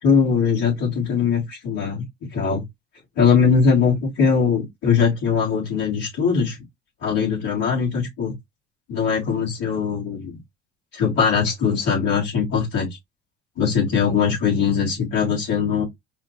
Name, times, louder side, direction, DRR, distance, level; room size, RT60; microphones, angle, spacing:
voice 1, 0.0-2.6 3.2-6.6 7.0-8.3 8.9-10.3 10.9-12.9 13.6-15.8, left 6 dB, 65° left, 3.3 m, -21 dB
4.8 x 2.6 x 3.1 m
figure-of-eight pair, 55°, 30 cm